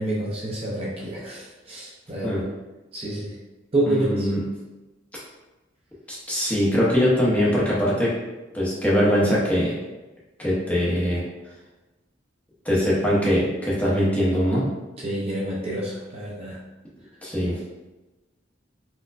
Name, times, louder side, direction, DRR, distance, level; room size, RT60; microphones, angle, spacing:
voice 1, 0.0-2.4 2.9-3.4 3.7-4.3 15.0-16.6, right 1 dB, 30° right, -5 dB, 0.5 m, -28 dB
voice 2, 3.9-4.4 6.1-8.1 8.5-9.7 10.4-11.2 12.6-14.7 17.2-17.6, equal, 10° left, -7 dB, 0.7 m, -22 dB
4.3 x 2.2 x 2.4 m, 1.1 s
head